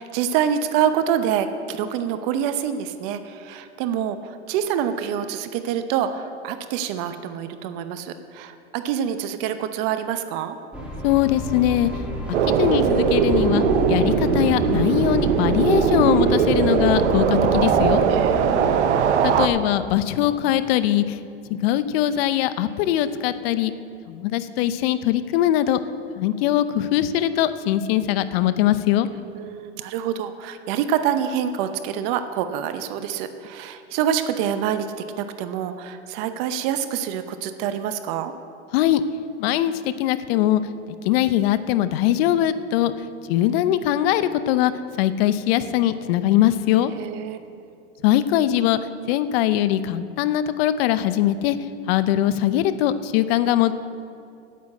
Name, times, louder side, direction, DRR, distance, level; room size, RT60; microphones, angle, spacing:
voice 1, 0.0-10.6 18.1-18.8 29.4-34.9 35.2-38.3 47.0-47.7, right 9 dB, 55° right, 9 dB, 0.8 m, -26 dB
sound 1, 10.7-18.1, left 1 dB, 5° right, 2.6 m, -30 dB
voice 2, 11.0-11.9 12.6-18.0 19.2-21.2 21.5-23.7 24.1-25.8 26.2-29.1 38.7-39.0 39.4-40.6 41.0-42.9 43.3-44.7 45.0-46.9 48.0-48.8 49.1-51.6 51.9-53.7, left 12 dB, 60° left, 13 dB, 0.8 m, -21 dB
sound 2, 12.3-19.5, right 7 dB, 80° right, 1.0 m, -20 dB
9.5 x 8.5 x 8.4 m, 2.6 s
hypercardioid pair, 110°, 34 cm